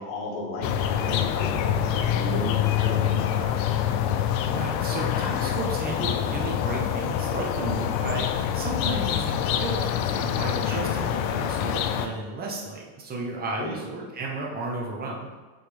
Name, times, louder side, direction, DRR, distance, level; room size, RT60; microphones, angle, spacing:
voice 1, 0.0-3.7 13.6-13.8, left 1 dB, 60° left, -2 dB, 1.9 m, -34 dB
sound 1, 0.6-12.1, left 9 dB, 85° left, 0.7 m, -26 dB
voice 2, 4.5-15.3, right 2 dB, 20° right, -2 dB, 1.0 m, -33 dB
8.1 x 3.7 x 3.5 m, 1.2 s
cardioid pair, 145°, 49 cm